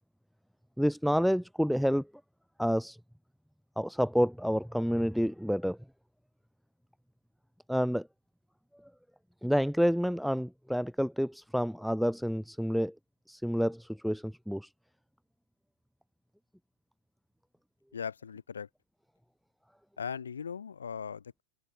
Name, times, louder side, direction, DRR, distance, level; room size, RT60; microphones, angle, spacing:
voice 1, 0.8-2.1 2.6-3.0 3.8-5.8 7.7-8.1 9.4-12.9 13.3-14.7, equal, ahead, 0.4 m, -29 dB
voice 2, 17.9-18.7 20.0-21.4, left 7 dB, 70° left, 1.1 m, -39 dB
figure-of-eight pair, 90°, 0 cm